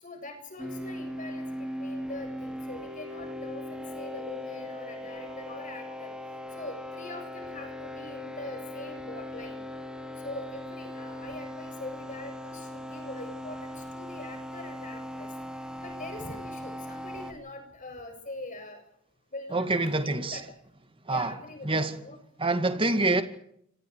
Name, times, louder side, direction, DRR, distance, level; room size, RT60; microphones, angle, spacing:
voice 1, 0.0-6.1 6.6-9.6 10.2-15.3 15.8-18.8 19.3-20.5 21.1-22.2, left 2 dB, 40° left, 7.5 m, -43 dB
sound 1, 0.6-17.3, left 1 dB, 5° right, 3.5 m, -39 dB
voice 2, 19.5-20.4 21.1-21.3 21.6-22.0 22.4-23.2, right 2 dB, 25° right, 2.2 m, -26 dB
27.0 x 26.0 x 4.8 m
head